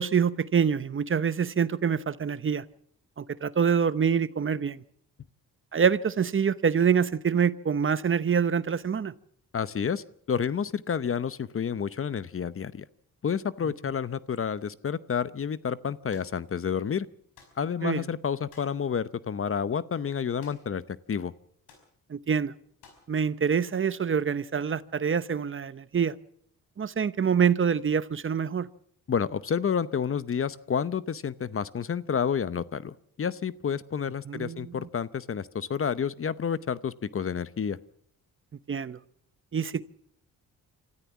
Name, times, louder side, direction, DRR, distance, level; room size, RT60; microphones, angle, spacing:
voice 1, 0.0-2.6 3.2-4.8 5.7-9.1 17.8-18.0 22.1-22.5 23.1-26.1 26.8-28.7 34.3-34.9 38.7-39.0 39.5-39.8, right 7 dB, 35° right, 0.8 m, -26 dB
voice 2, 9.5-12.9 13.2-17.1 17.6-20.8 21.1-21.3 29.1-37.8, left 7 dB, 40° left, 0.8 m, -30 dB
sound 1, 16.1-16.4 17.4-17.6 18.5-18.8 20.4-20.8 21.1-21.2 21.7-21.9 22.8-23.1, left 5 dB, 90° left, 5.3 m, -55 dB
26.0 x 14.0 x 7.2 m
cardioid pair, 80°, 35 cm